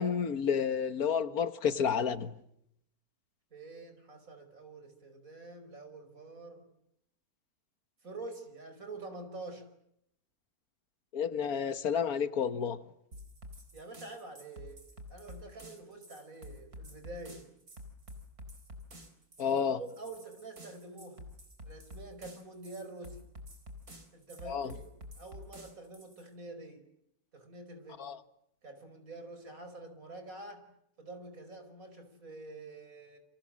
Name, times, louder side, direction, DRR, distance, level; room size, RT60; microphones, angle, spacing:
voice 1, 0.0-2.3 11.1-12.8 19.4-19.8 24.5-24.7 28.0-28.2, left 7 dB, 85° left, 1.8 m, -30 dB
voice 2, 3.5-6.6 8.0-9.7 13.7-14.8 15.1-17.4 19.4-21.2 21.6-23.2 24.1-24.9 25.2-26.9 27.3-28.1 28.6-30.7 31.0-33.2, right 2 dB, 65° right, 5.7 m, -47 dB
sound 1, 13.1-26.3, left 1 dB, 85° right, 4.6 m, -50 dB
29.0 x 27.0 x 7.6 m
omnidirectional pair, 1.5 m